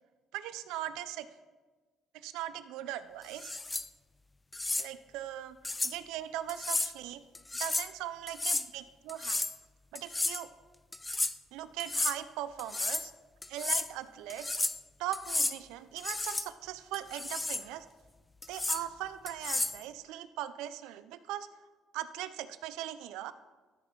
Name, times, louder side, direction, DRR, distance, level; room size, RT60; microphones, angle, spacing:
voice 1, 0.3-1.3 2.1-3.5 4.8-5.6 5.8-7.2 7.6-9.4 9.9-10.5 11.5-13.1 13.5-14.6 15.0-17.9 18.5-21.5 21.9-23.3, right 12 dB, 85° right, 13 dB, 0.4 m, -39 dB
sound 1, 3.3-3.9 4.5-4.9 5.6-5.9 6.5-6.9 7.3-7.9 8.3-8.7 9.1-9.6 9.9-10.4 10.9-11.3 11.8-12.2 12.6-13.1 13.4-13.9 14.3-14.8 15.1-15.6 16.0-16.5 16.9-17.6 18.4-18.8 19.3-19.8, left 2 dB, 15° left, 0.4 m, -32 dB
13.0 x 4.5 x 4.3 m, 1.3 s
cardioid pair, 85°, 0 cm